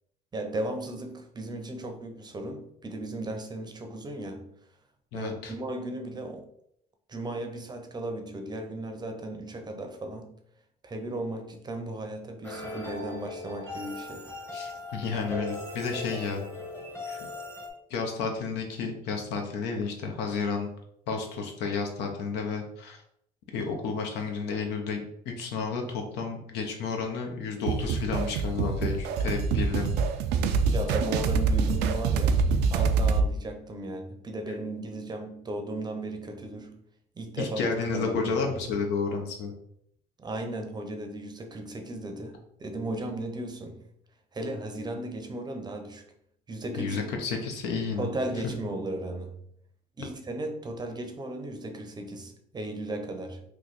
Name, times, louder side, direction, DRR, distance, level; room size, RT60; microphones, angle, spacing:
voice 1, 0.3-4.5 5.1-6.5 7.1-10.3 10.8-14.3 30.7-32.4 32.7-36.8 37.2-37.6 37.9-38.5 40.2-43.8 44.3-46.0 46.5-47.0 48.0-49.4 50.0-53.4, right 1 dB, 25° right, 5 dB, 0.6 m, -36 dB
voice 2, 5.1-5.5 14.5-16.4 17.1-17.2 17.9-20.7 21.1-23.0 23.5-29.9 37.4-39.5 46.8-48.1 48.3-48.5, left 5 dB, 85° left, 3 dB, 0.8 m, -31 dB
sound 1, 12.4-17.7, left 2 dB, 15° left, 0.8 m, -39 dB
sound 2, 27.7-33.3, right 5 dB, 85° right, 0.4 m, -25 dB
3.1 x 2.3 x 4.0 m, 0.72 s
cardioid pair, 110°, 17 cm